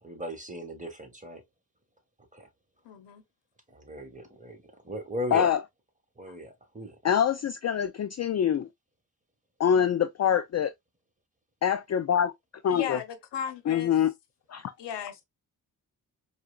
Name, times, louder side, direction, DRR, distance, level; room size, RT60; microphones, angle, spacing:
voice 1, 0.0-1.4 2.3-2.5 3.7-5.5 6.2-7.0, equal, 20° right, 1.4 m, -37 dB
voice 2, 2.8-3.2 12.7-13.9 14.8-15.2, left 8 dB, 85° left, 0.8 m, -36 dB
voice 3, 7.0-8.7 9.6-10.7 11.6-12.3 12.6-13.0 13.7-14.1 14.5-14.7, left 9 dB, 40° left, 0.4 m, -25 dB
4.6 x 2.3 x 2.3 m
cardioid pair, 60°, 41 cm